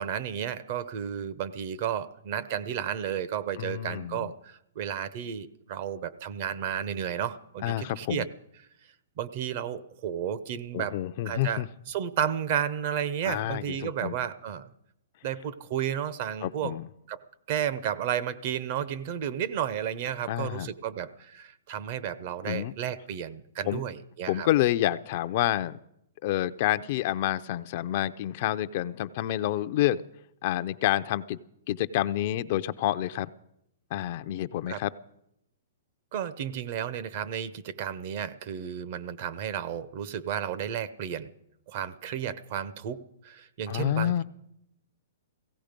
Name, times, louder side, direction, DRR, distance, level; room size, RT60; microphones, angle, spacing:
voice 1, 0.0-8.3 9.2-11.0 11.2-14.7 15.2-16.7 17.1-17.2 17.5-24.5 34.7-34.8 36.1-41.3 41.7-44.2, right 9 dB, 45° right, 14 dB, 0.7 m, -32 dB
voice 2, 3.6-4.3 7.6-8.2 10.7-11.7 13.3-14.2 16.4-16.9 20.3-20.7 22.4-22.7 23.7-23.8 24.3-25.8 26.2-30.0 30.4-31.4 31.7-33.3 33.9-34.9 43.7-44.2, left 13 dB, 45° left, 12 dB, 0.5 m, -28 dB
16.5 x 15.5 x 5.2 m, 0.80 s
hypercardioid pair, 145°, 0 cm